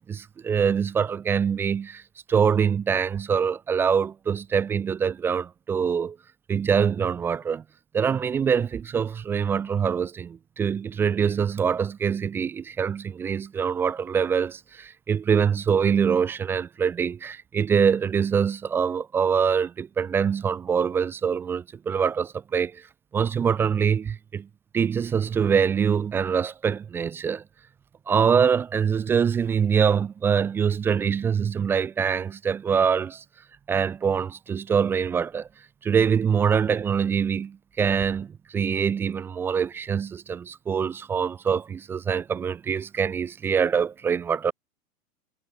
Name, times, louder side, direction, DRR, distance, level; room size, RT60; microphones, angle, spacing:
voice 1, 0.0-2.0 2.3-6.2 6.5-7.6 7.9-22.8 23.1-24.5 24.7-27.4 28.1-33.2 33.7-35.5 35.8-44.5, right 7 dB, 5° right, 0.3 m, -24 dB
hypercardioid pair, 110°, 46 cm